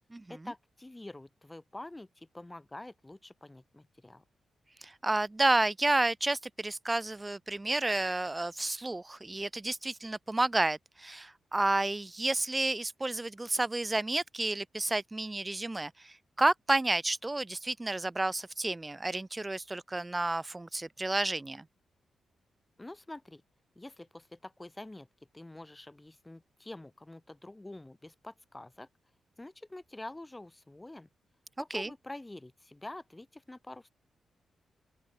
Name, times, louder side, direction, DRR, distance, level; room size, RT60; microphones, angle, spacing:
voice 1, 0.3-4.2 22.8-23.4 23.7-25.1 25.3-28.9 29.4-31.1 31.6-33.9, left 2 dB, 10° left, 1.6 m, -46 dB
voice 2, 4.8-21.6 31.7-31.9, right 2 dB, 15° right, 0.6 m, -31 dB
open air
wide cardioid pair, 170°, 0 cm